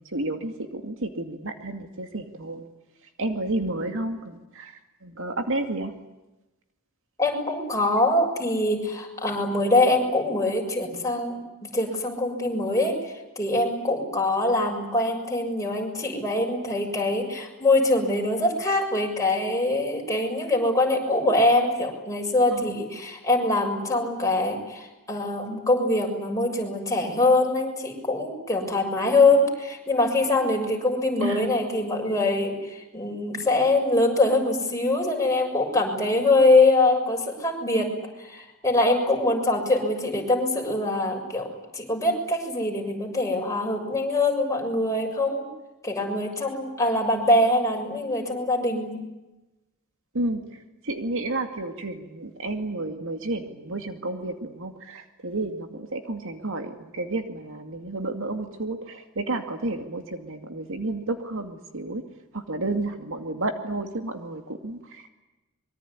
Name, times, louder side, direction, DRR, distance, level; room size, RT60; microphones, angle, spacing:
voice 1, 0.0-2.7 3.2-5.9 22.5-22.8 31.2-31.5 50.1-62.0 62.3-65.1, right 2 dB, 60° right, 6 dB, 2.4 m, -31 dB
voice 2, 7.2-11.4 11.7-37.9 38.2-45.5 45.8-49.0, left 2 dB, 15° left, 1 dB, 6.9 m, -23 dB
25.0 x 23.5 x 9.8 m, 1.0 s
head